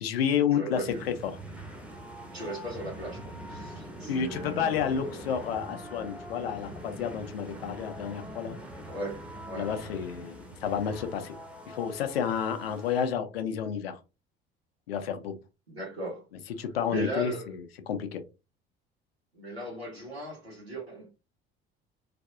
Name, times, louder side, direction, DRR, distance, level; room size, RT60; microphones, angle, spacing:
voice 1, 0.0-1.3 4.1-8.6 9.6-11.4 11.7-14.0 14.9-15.3 16.6-17.6 17.9-18.2, left 8 dB, 75° left, 0.6 m, -30 dB
voice 2, 0.5-1.0 2.3-5.2 8.9-9.7 15.7-16.3 16.9-17.5 19.3-21.1, equal, 85° right, 1.2 m, -38 dB
sound 1, 0.7-13.1, right 1 dB, 5° right, 0.9 m, -43 dB
3.3 x 2.6 x 2.4 m
figure-of-eight pair, 55°, 30 cm